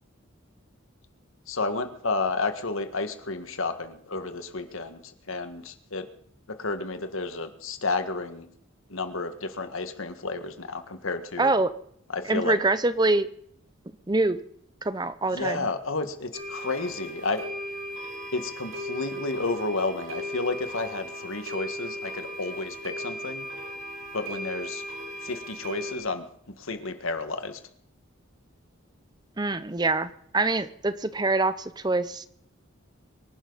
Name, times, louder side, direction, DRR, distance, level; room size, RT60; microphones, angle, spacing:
voice 1, 1.5-5.0 5.3-6.0 6.6-8.5 8.9-11.5 12.1-12.6 15.3-17.4 18.3-23.5 24.1-24.8 25.2-26.2 26.7-27.6, left 3 dB, 80° left, 8 dB, 1.8 m, -31 dB
voice 2, 11.4-11.7 12.2-13.3 14.1-14.4 14.8-15.7 29.4-32.3, right 2 dB, 20° right, 14 dB, 0.6 m, -25 dB
sound 1, 16.3-26.0, equal, 80° right, 5.5 m, -37 dB
25.0 x 11.5 x 4.1 m, 0.68 s
head